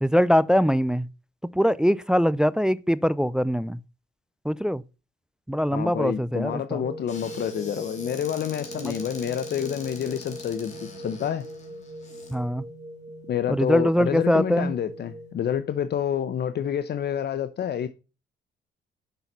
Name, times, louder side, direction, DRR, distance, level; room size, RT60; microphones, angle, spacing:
voice 1, 0.0-1.1 1.5-3.8 4.5-4.8 5.5-6.8 8.8-8.9 12.3-12.6 13.5-14.7, equal, 5° right, 0.3 m, -22 dB
voice 2, 5.7-11.5 13.3-17.9, left 9 dB, 55° left, 0.7 m, -28 dB
sound 1, 6.8-15.3, right 1 dB, 35° right, 2.6 m, -41 dB
Squeak / Cupboard open or close, 7.1-12.3, left 3 dB, 35° left, 3.1 m, -44 dB
7.0 x 5.8 x 5.3 m
cardioid pair, 90°, 20 cm